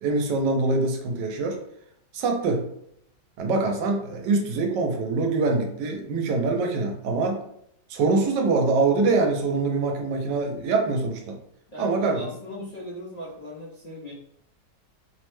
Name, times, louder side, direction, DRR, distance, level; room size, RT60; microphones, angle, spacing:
voice 1, 0.0-1.6 2.1-2.6 3.4-7.4 7.9-11.4 11.8-12.2 12.6-12.7, right 3 dB, 85° right, 3 dB, 1.2 m, -24 dB
voice 2, 11.7-14.1, left 1 dB, 70° left, -8 dB, 0.4 m, -38 dB
3.2 x 2.1 x 3.0 m, 0.73 s
omnidirectional pair, 1.8 m